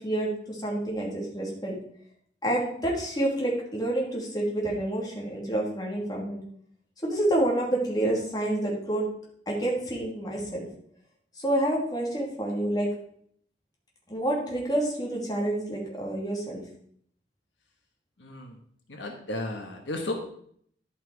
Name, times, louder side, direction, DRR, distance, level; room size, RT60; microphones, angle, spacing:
voice 1, 0.0-1.8 2.4-6.4 7.0-9.0 9.5-10.7 11.4-12.9 14.1-16.6, right 1 dB, 20° left, -3 dB, 2.6 m, -28 dB
voice 2, 18.2-18.6 18.9-20.1, left 2 dB, 80° left, 2 dB, 1.4 m, -34 dB
11.5 x 5.8 x 4.8 m, 0.65 s
head